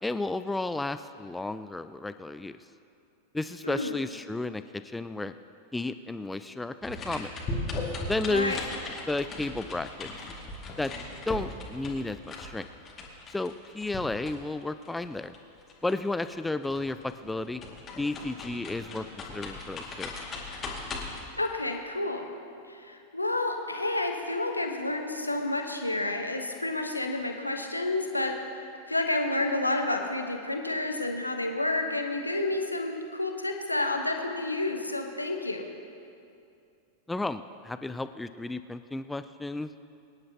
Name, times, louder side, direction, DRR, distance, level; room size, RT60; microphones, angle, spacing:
voice 1, 0.0-2.6 3.3-5.3 5.7-7.3 8.1-8.6 9.1-10.1 10.8-10.9 11.3-12.7 13.3-15.3 15.8-17.6 18.0-19.1 19.3-20.1 37.1-39.8, left 2 dB, 5° left, 12 dB, 0.4 m, -32 dB
sound 1, 6.8-16.3 16.6-21.2, left 2 dB, 25° left, 2.3 m, -38 dB
voice 2, 8.3-8.6 21.4-22.3 22.7-28.4 28.9-35.7, left 2 dB, 85° left, 4 dB, 1.2 m, -30 dB
24.5 x 10.5 x 2.9 m, 2.5 s
figure-of-eight pair, 90°, 0 cm